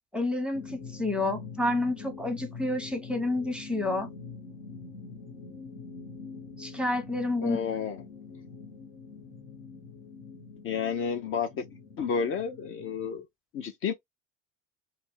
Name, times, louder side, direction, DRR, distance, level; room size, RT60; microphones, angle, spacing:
voice 1, 0.1-4.1 6.6-7.6, left 2 dB, 5° right, 0.8 m, -29 dB
sound 1, 0.5-13.2, left 5 dB, 65° left, 1.2 m, -44 dB
voice 2, 7.4-8.0 10.6-11.6 12.0-13.3 13.5-13.9, left 6 dB, 35° left, 0.5 m, -31 dB
2.5 x 2.2 x 3.4 m
figure-of-eight pair, 70°, 39 cm